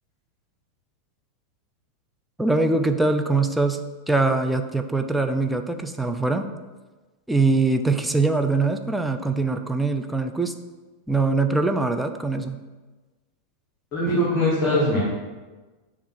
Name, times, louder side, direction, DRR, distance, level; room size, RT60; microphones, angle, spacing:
voice 1, 2.4-3.8 4.1-6.5 7.3-10.5 11.1-12.6, right 3 dB, 5° right, 5 dB, 0.4 m, -22 dB
voice 2, 13.9-15.0, left 1 dB, 30° left, -5 dB, 1.3 m, -21 dB
7.1 x 2.5 x 5.4 m, 1.3 s
figure-of-eight pair, 90°, 0 cm